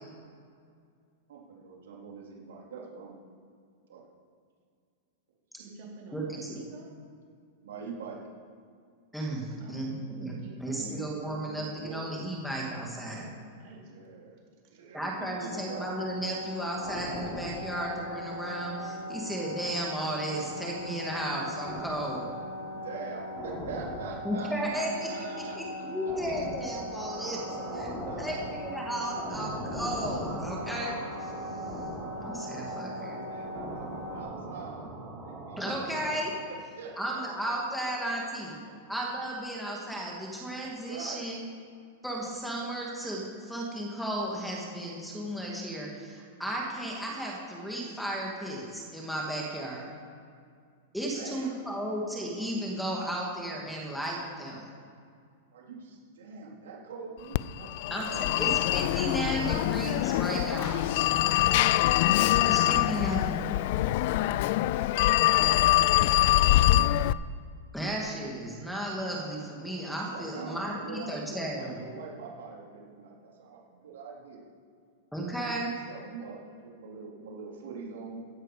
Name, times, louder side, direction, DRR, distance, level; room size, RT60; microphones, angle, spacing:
voice 1, 1.3-3.2 3.9-4.0 7.6-8.2 10.7-12.2 13.9-14.4 14.7-15.9 22.7-26.1 27.5-28.6 32.6-34.9 35.2-35.9 36.5-38.1 38.6-38.7 39.7-39.9 40.8-41.2 51.1-51.5 55.5-58.5 64.7-66.1 66.5-66.8 70.1-74.4 75.4-78.2, right 5 dB, 85° right, -3 dB, 3.6 m, -44 dB
voice 2, 5.6-6.9 9.6-9.9 10.4-10.9 13.1-13.8, right 3 dB, 50° right, -2 dB, 3.8 m, -47 dB
voice 3, 6.1-6.6 9.1-13.2 14.9-22.3 24.2-25.1 25.6-27.4 27.7-27.9 28.2-31.3 32.2-33.2 35.6-36.3 37.0-38.5 38.9-41.4 42.0-49.9 50.9-54.6 57.9-60.8 62.5-63.4 67.7-71.8 75.1-75.7, right 1 dB, ahead, -2 dB, 2.0 m, -34 dB
sound 1, 15.5-34.2, left 1 dB, 25° left, 4.2 m, -39 dB
sound 2, 26.9-36.2, right 2 dB, 15° right, 3.2 m, -43 dB
Telephone, 57.3-67.1, left 15 dB, 50° left, 0.3 m, -24 dB
15.0 x 11.0 x 5.0 m, 2.2 s
supercardioid pair, 155°, 0 cm